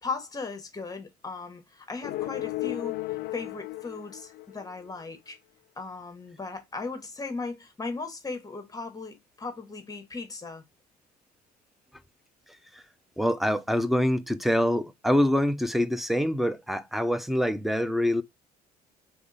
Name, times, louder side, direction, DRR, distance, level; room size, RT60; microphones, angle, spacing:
voice 1, 0.0-3.0 3.3-5.4 5.8-10.6, left 4 dB, 20° left, 1.1 m, -37 dB
sound 1, 2.0-4.9, left 18 dB, 70° left, 0.4 m, -34 dB
voice 2, 13.2-18.2, equal, ahead, 0.4 m, -25 dB
3.5 x 3.4 x 3.9 m
cardioid pair, 110°, 17 cm